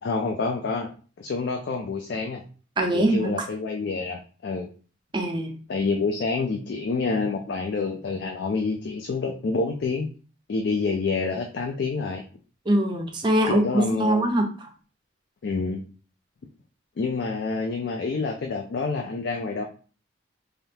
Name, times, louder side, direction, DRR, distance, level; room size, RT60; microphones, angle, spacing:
voice 1, 0.0-0.9 1.2-2.4 2.9-4.7 5.7-10.1 10.5-12.2 13.5-14.2 15.4-15.8 17.0-19.6, left 4 dB, 55° left, 3 dB, 0.3 m, -27 dB
voice 2, 2.8-3.3 5.1-5.6 12.7-14.7, right 1 dB, 25° right, 3 dB, 0.5 m, -23 dB
3.5 x 2.3 x 2.7 m, 0.38 s
head